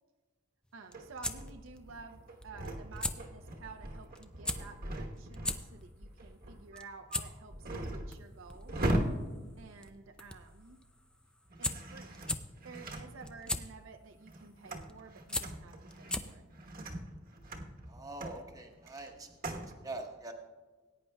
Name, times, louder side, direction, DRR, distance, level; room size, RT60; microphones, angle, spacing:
sound 1, 0.7-16.5, left 1 dB, 5° left, 0.3 m, -41 dB
voice 1, 0.7-8.9 9.6-10.8 11.6-12.2 12.6-16.5, right 4 dB, 65° right, 5 dB, 0.6 m, -52 dB
sound 2, 0.9-10.7 11.5-13.7 14.1-19.7, right 1 dB, 45° right, 1.1 m, -40 dB
voice 2, 17.9-20.3, right 2 dB, 15° right, 2 dB, 1.0 m, -44 dB
19.5 x 9.6 x 2.3 m, 1.3 s
head